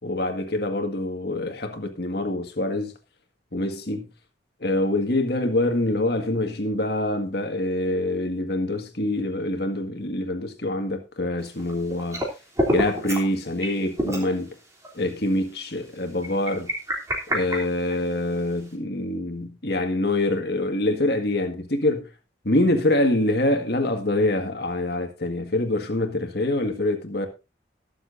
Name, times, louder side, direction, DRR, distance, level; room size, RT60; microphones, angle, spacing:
voice 1, 0.0-2.9 3.5-4.1 4.6-12.2 12.7-14.5 14.9-16.7 17.3-22.1 22.4-27.3, left 1 dB, 55° left, 1.9 m, -25 dB
sound 1, 11.4-12.3 12.6-13.3 13.6-13.7 14.0-14.3 14.8-14.9 16.2-18.3, equal, 15° right, 3.1 m, -27 dB
21.0 x 7.3 x 2.7 m
head